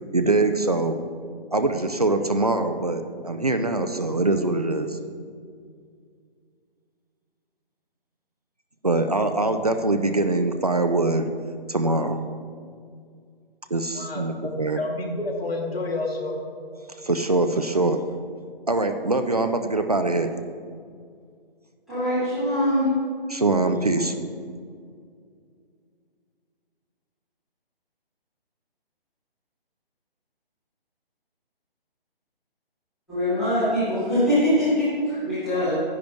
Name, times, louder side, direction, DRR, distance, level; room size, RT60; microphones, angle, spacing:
voice 1, 0.1-0.9 1.5-5.0 8.8-11.3 11.7-12.2 13.7-14.8 17.0-18.0 18.7-20.3 23.3-24.2, right 2 dB, 40° right, 8 dB, 0.4 m, -23 dB
voice 2, 13.9-16.3, left 2 dB, 80° left, 1 dB, 2.4 m, -30 dB
voice 3, 21.9-22.9 33.1-35.7, equal, ahead, -22 dB, 0.9 m, -23 dB
10.5 x 10.5 x 3.5 m, 2.2 s
hypercardioid pair, 180°, 30 cm